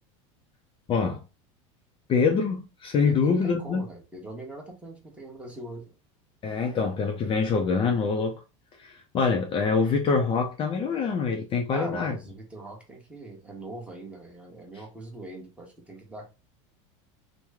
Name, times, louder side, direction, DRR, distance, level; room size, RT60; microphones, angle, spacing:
voice 1, 0.9-1.2 2.1-3.8 6.4-8.4 8.8-12.2, left 5 dB, 35° left, 0.5 m, -25 dB
voice 2, 3.0-5.9 11.7-16.3, right 2 dB, 5° right, 1.1 m, -41 dB
3.0 x 2.2 x 3.4 m
supercardioid pair, 120°, 16 cm